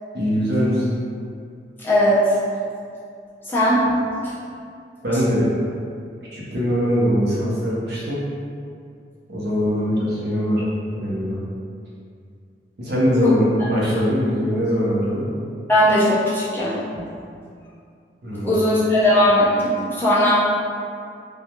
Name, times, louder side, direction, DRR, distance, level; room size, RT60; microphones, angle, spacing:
voice 1, 0.1-0.9 5.0-5.5 6.3-8.2 9.3-10.6 11.0-11.4 12.8-15.3 18.2-18.5, equal, 65° right, -7 dB, 0.7 m, -21 dB
voice 2, 1.8-2.2 3.5-3.9 13.2-13.3 15.7-17.0 18.4-20.4, left 1 dB, 10° left, -10 dB, 0.4 m, -18 dB
2.3 x 2.2 x 2.9 m, 2.3 s
head